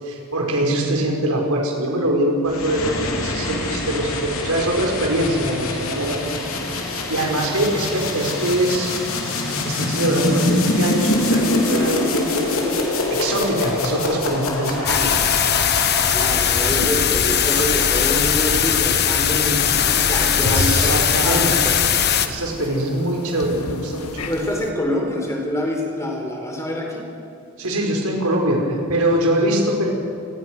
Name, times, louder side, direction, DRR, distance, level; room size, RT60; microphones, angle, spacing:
voice 1, 0.0-6.5 6.9-8.9 9.4-12.6 13.1-14.9 20.4-21.5 22.1-24.1 27.6-29.9, right 1 dB, 80° right, 0 dB, 5.6 m, -23 dB
sound 1, 2.5-16.8, left 2 dB, 65° left, 3.8 m, -24 dB
voice 2, 14.7-15.2 16.1-21.8 24.3-27.1, left 1 dB, 15° left, 1 dB, 4.7 m, -26 dB
sound 2, 14.9-22.3, left 8 dB, 50° left, 1.4 m, -19 dB
sound 3, 16.7-24.7, left 2 dB, 85° left, 1.7 m, -32 dB
28.0 x 20.0 x 6.4 m, 2.5 s
head